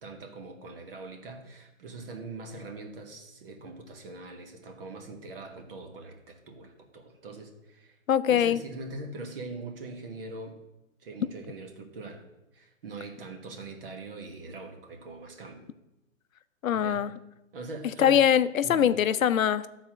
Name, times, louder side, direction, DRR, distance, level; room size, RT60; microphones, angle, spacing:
voice 1, 0.0-8.0 8.3-10.6 11.0-12.2 12.5-15.6 16.7-17.0 17.5-18.2 18.6-19.1, right 3 dB, 45° right, 5 dB, 1.5 m, -42 dB
voice 2, 8.1-8.6 16.6-17.1 18.0-19.7, left 9 dB, 75° left, 14 dB, 0.6 m, -22 dB
12.0 x 4.2 x 6.1 m, 0.95 s
hypercardioid pair, 155°, 41 cm